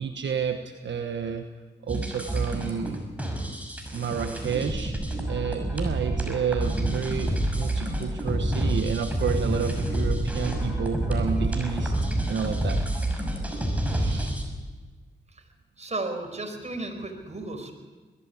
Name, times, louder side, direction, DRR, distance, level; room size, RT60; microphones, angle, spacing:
voice 1, 0.0-1.4 1.8-3.0 3.9-5.0 5.2-11.9 12.3-12.8 13.8-14.3, right 7 dB, 70° right, 6 dB, 1.2 m, -30 dB
sound 1, 1.9-14.5, right 1 dB, 5° right, 6.0 m, -28 dB
voice 2, 15.8-17.7, right 2 dB, 35° right, 4 dB, 4.9 m, -34 dB
21.0 x 14.5 x 8.5 m, 1.3 s
supercardioid pair, 45°, 20 cm